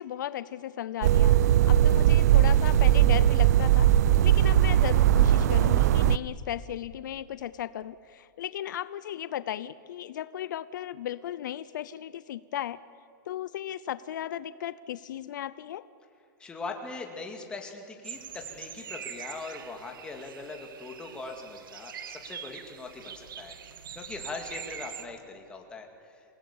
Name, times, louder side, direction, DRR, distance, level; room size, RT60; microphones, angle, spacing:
voice 1, 0.0-1.4 1.7-3.9 4.2-12.8 13.3-15.9, left 11 dB, 65° left, 16 dB, 0.7 m, -36 dB
sound 1, 1.0-6.2, right 11 dB, 55° right, 0.6 m, -20 dB
voice 2, 16.4-23.6 24.0-25.9, left 3 dB, 10° left, 3 dB, 2.1 m, -41 dB
sound 2, 18.0-25.1, right 8 dB, 85° right, 1.8 m, -43 dB
28.0 x 18.0 x 8.7 m, 2.5 s
supercardioid pair, 170°, 11 cm